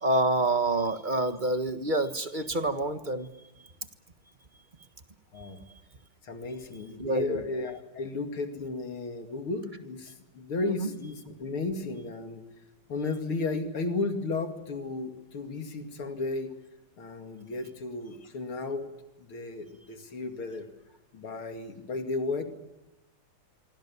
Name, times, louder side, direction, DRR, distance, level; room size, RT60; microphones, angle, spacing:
voice 1, 0.0-3.3 7.0-7.4, right 2 dB, 25° right, 9 dB, 1.4 m, -27 dB
voice 2, 6.2-12.4 12.9-16.5 17.0-18.9 19.2-20.7 21.1-22.4, left 3 dB, 75° left, 6 dB, 3.1 m, -34 dB
26.0 x 25.0 x 7.2 m, 1.0 s
omnidirectional pair, 2.4 m